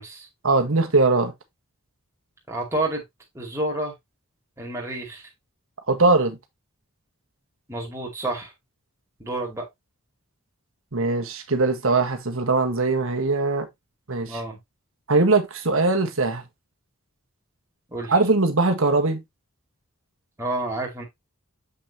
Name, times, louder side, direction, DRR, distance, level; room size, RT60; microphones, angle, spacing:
voice 1, 0.4-1.3 5.9-6.4 10.9-13.7 14.1-14.4 15.1-16.4 18.1-19.2, right 3 dB, 65° right, 1.4 m, -21 dB
voice 2, 2.5-3.0 3.3-3.9 4.6-5.2 7.7-8.5 9.2-9.7 14.3-14.6 17.9-18.1 20.4-21.0, right 2 dB, 15° right, 2.4 m, -29 dB
7.3 x 5.6 x 2.9 m
head